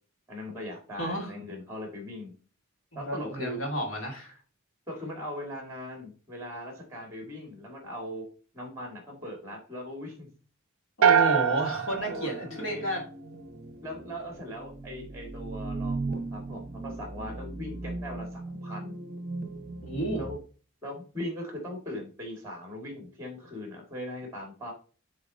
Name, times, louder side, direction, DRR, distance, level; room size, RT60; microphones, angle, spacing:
voice 1, 0.3-2.3 2.9-3.6 4.9-8.3 8.5-10.3 12.1-12.8 13.8-19.0 20.2-20.4 20.8-24.7, left 1 dB, 15° right, 2 dB, 1.8 m, -39 dB
voice 2, 1.0-1.3 2.9-4.4 11.0-13.0 19.8-20.2, right 1 dB, 65° left, 1 dB, 2.5 m, -31 dB
sound 1, 11.0-13.3, right 8 dB, 75° right, 0.4 m, -25 dB
sound 2, 11.9-20.4, right 3 dB, 40° right, 0.7 m, -38 dB
8.8 x 3.9 x 3.8 m, 0.38 s
head